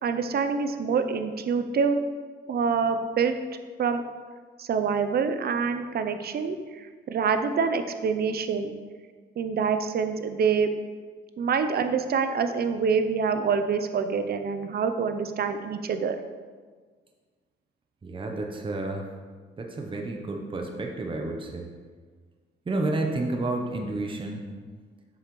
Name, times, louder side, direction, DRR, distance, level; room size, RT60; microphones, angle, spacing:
voice 1, 0.0-2.0 2.5-3.4 3.8-4.0 4.6-8.7 9.4-10.7 11.4-16.2, right 5 dB, 50° right, 8 dB, 0.6 m, -26 dB
voice 2, 18.0-19.1 19.6-21.7 22.7-24.5, right 2 dB, 25° right, 2 dB, 0.9 m, -30 dB
7.9 x 6.5 x 3.2 m, 1.5 s
cardioid pair, 90°, 20 cm